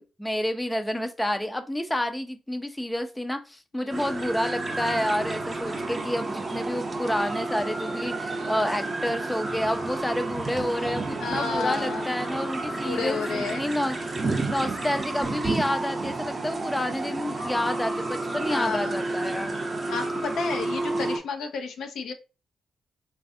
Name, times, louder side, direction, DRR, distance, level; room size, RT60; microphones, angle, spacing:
voice 1, 0.0-14.0 14.5-19.6, left 1 dB, 10° left, 7 dB, 0.5 m, -29 dB
sound 1, 3.9-21.2, right 2 dB, 35° right, 0.7 m, -30 dB
voice 2, 11.2-12.1 12.8-13.7 18.5-19.0 19.9-22.1, left 5 dB, 75° left, 4 dB, 0.6 m, -31 dB
3.3 x 2.4 x 2.6 m, 0.30 s
cardioid pair, 75°, 0 cm